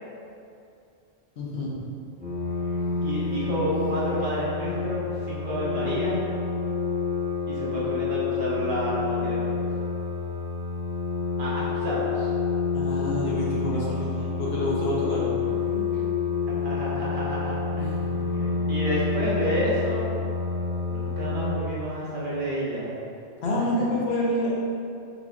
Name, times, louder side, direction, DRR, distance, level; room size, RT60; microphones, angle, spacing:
voice 1, 1.4-1.7 12.7-15.3 17.7-17.9 23.4-24.5, left 1 dB, 65° left, -5 dB, 0.9 m, -27 dB
sound 1, 2.2-21.6, left 5 dB, 25° right, 1.4 m, -28 dB
sound 2, 2.4-4.4 8.5-9.4 14.5-14.6 15.4-18.7, left 1 dB, 5° right, 0.8 m, -44 dB
voice 2, 2.7-6.2 7.5-9.6 11.4-12.3 15.9-16.0 16.6-17.9 18.3-20.1 20.9-22.9 23.5-23.8, equal, 50° right, -8 dB, 0.9 m, -30 dB
5.0 x 2.3 x 2.5 m, 2.6 s
omnidirectional pair, 1.2 m